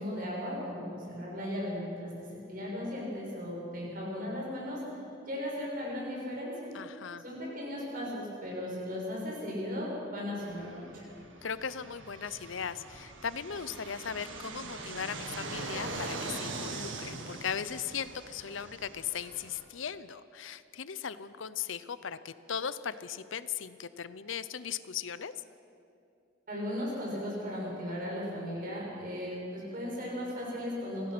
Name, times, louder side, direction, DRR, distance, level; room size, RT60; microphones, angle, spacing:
voice 1, 0.0-4.8 5.2-6.7 7.2-11.0 26.5-31.1, left 1 dB, 45° right, -3 dB, 6.8 m, -36 dB
voice 2, 6.7-7.2 11.4-25.3, left 7 dB, 75° left, 14 dB, 0.7 m, -38 dB
Fixed-wing aircraft airplane, 10.4-19.6, right 3 dB, 75° right, 1.9 m, -42 dB
25.5 x 17.0 x 6.1 m, 2.6 s
head